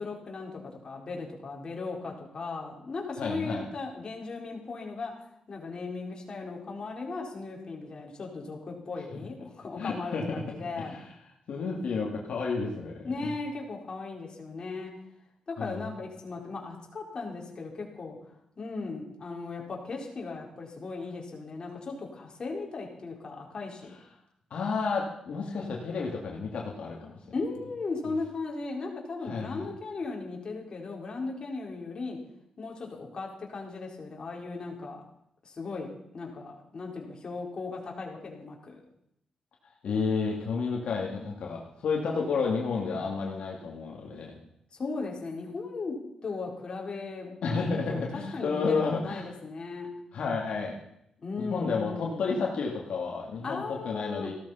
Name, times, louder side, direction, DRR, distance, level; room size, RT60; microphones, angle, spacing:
voice 1, 0.0-5.1 5.5-11.0 13.0-14.9 15.5-18.2 18.6-23.9 27.3-32.2 32.6-35.0 35.4-35.9 36.1-38.8 44.7-46.0 46.2-47.3 47.7-48.0 48.3-49.9 51.2-52.3 53.4-54.3, left 3 dB, 40° left, -1 dB, 4.4 m, -37 dB
voice 2, 3.2-3.7 9.8-10.4 10.8-11.0 11.5-13.3 15.6-15.8 24.5-27.2 29.2-29.7 39.8-44.4 47.4-49.3 50.1-50.7 51.4-54.3, left 4 dB, 70° left, -1 dB, 2.4 m, -31 dB
16.0 x 13.0 x 5.7 m, 0.76 s
cardioid pair, 110°, 2 cm